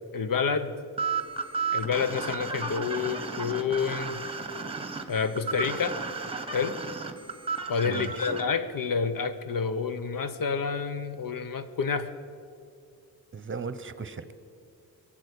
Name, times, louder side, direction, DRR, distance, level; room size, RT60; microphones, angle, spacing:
voice 1, 0.1-0.7 1.7-4.2 5.1-6.0 6.5-6.8 7.7-12.1, left 5 dB, 65° left, 11 dB, 1.0 m, -29 dB
sound 1, 1.0-8.4, right 5 dB, 15° right, 1.3 m, -33 dB
voice 2, 7.8-8.3 13.3-14.4, right 5 dB, 35° right, 13 dB, 0.9 m, -37 dB
22.0 x 7.6 x 8.3 m, 2.4 s
cardioid pair, 90°, 36 cm